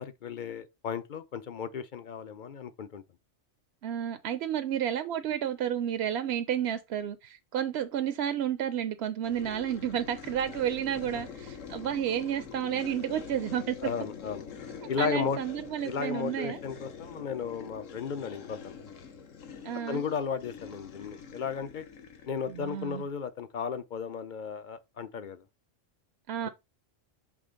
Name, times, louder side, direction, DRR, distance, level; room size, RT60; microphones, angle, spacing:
voice 1, 0.0-3.0 11.1-11.2 13.8-14.4 14.9-15.4 15.8-18.7 19.9-21.8 22.3-25.4 26.4-26.5, left 6 dB, 50° left, 0.7 m, -34 dB
voice 2, 3.8-13.8 15.0-16.6 19.6-20.0 22.5-23.0 26.3-26.5, right 10 dB, 65° right, 0.8 m, -31 dB
sound 1, 9.2-23.1, left 6 dB, 75° left, 1.3 m, -45 dB
6.2 x 3.3 x 5.0 m
omnidirectional pair, 1.3 m